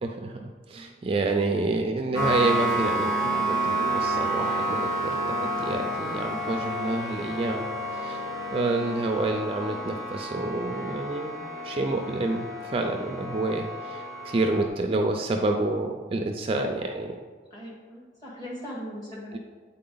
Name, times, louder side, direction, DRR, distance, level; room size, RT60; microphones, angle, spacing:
voice 1, 0.0-7.7 7.9-8.2 8.5-17.2 19.3-19.4, right 2 dB, 30° right, 4 dB, 0.3 m, -28 dB
sound 1, 2.1-14.7, right 1 dB, 65° left, 1.3 m, -30 dB
voice 2, 17.5-19.4, equal, 25° left, -5 dB, 1.8 m, -40 dB
8.5 x 4.1 x 3.8 m, 1.5 s
head